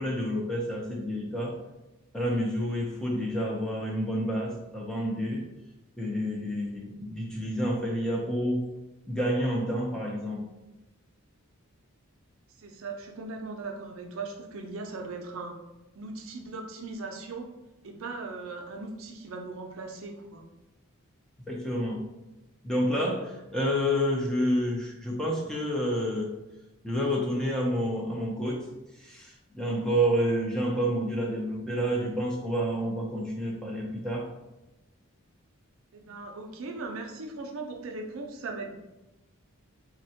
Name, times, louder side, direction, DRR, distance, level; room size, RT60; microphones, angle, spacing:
voice 1, 0.0-1.6 2.1-5.4 6.0-8.7 9.1-10.4 21.5-22.0 22.6-26.4 26.8-28.7 28.9-34.3, equal, 5° left, -3 dB, 0.4 m, -29 dB
voice 2, 12.6-15.5 16.0-17.4 17.8-20.4 35.9-38.7, right 3 dB, 65° right, 2 dB, 0.4 m, -38 dB
3.5 x 2.1 x 2.7 m, 0.98 s
head